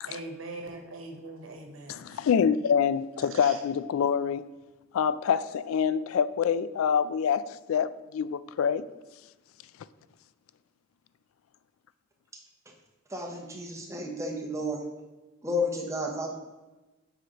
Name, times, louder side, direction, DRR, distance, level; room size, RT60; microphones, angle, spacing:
voice 1, 0.1-2.0 3.4-3.6, right 2 dB, 80° right, 1.0 m, -41 dB
voice 2, 1.9-4.5 4.9-8.9, left 7 dB, 90° left, 0.3 m, -26 dB
voice 3, 13.1-14.8 15.4-16.3, left 1 dB, 15° right, 0.7 m, -32 dB
7.7 x 4.8 x 2.9 m
head